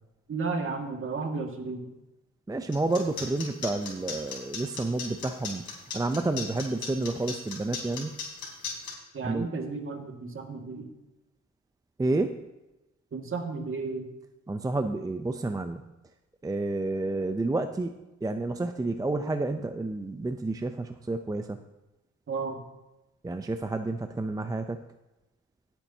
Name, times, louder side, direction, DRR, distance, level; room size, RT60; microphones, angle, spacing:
voice 1, 0.3-1.8 9.1-10.9 13.1-14.1 22.3-22.6, right 4 dB, 45° right, 3 dB, 2.0 m, -33 dB
voice 2, 2.5-5.6 5.9-8.1 9.2-9.5 12.0-12.4 14.5-15.8 16.4-21.6 23.2-24.8, right 2 dB, 10° right, 8 dB, 0.6 m, -30 dB
sound 1, 2.7-8.9, left 6 dB, 70° left, 3.7 m, -36 dB
17.5 x 9.1 x 2.8 m, 0.99 s
cardioid pair, 90°, 30 cm